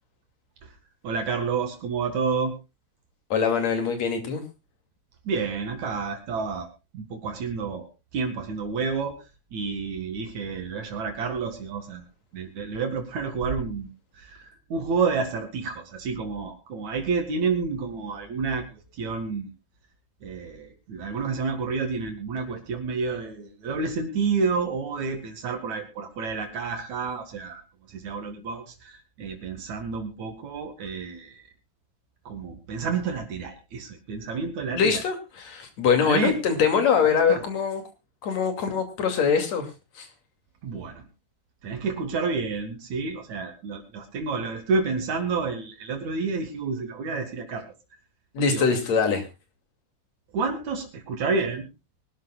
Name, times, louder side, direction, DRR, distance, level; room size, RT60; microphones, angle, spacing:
voice 1, 1.0-2.5 5.2-6.7 6.9-7.9 8.1-9.2 9.5-12.0 12.3-13.9 14.1-19.5 20.2-27.6 27.9-31.4 32.3-35.0 36.0-36.3 37.0-37.4 40.6-41.1 41.6-47.7 48.5-48.6 50.3-51.7, right 4 dB, 70° right, 5 dB, 3.2 m, -29 dB
voice 2, 3.3-4.4 34.7-37.8 38.2-39.7 40.0-40.1 48.3-49.3, left 6 dB, 65° left, 7 dB, 3.6 m, -23 dB
23.0 x 12.5 x 2.4 m, 0.27 s
omnidirectional pair, 3.4 m